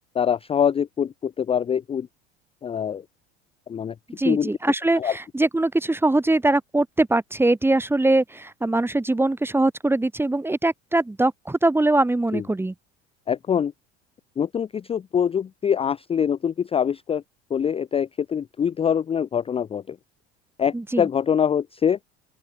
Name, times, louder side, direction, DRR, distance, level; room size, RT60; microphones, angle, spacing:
voice 1, 0.1-2.1 2.6-3.0 3.7-3.9 4.3-4.5 5.0-5.2 12.3-12.4 13.3-13.7 14.4-17.2 17.5-20.0 20.6-22.0, left 8 dB, 20° left, 0.4 m, -24 dB
voice 2, 4.1-12.7 20.7-21.1, right 2 dB, 5° right, 0.8 m, -22 dB
open air
hypercardioid pair, 80°, 31 cm